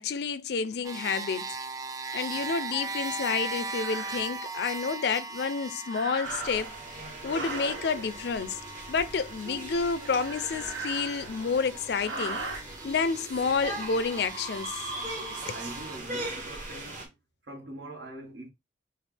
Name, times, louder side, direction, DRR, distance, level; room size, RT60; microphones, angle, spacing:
voice 1, 0.0-1.5 2.1-6.7 7.2-8.6 8.9-12.4 12.8-14.8, left 5 dB, 60° left, 0.4 m, -29 dB
sound 1, 0.8-16.0, right 3 dB, 20° right, 0.4 m, -40 dB
sound 2, 2.8-2.9 3.7-4.2 5.8-6.8 7.2-7.9 10.0-11.5 11.9-12.6, right 3 dB, 85° right, 1.2 m, -38 dB
sound 3, 6.2-17.0, right 2 dB, 45° right, 1.5 m, -40 dB
voice 2, 15.5-17.2 17.4-18.5, right 1 dB, 70° right, 1.5 m, -43 dB
6.2 x 2.4 x 3.3 m
head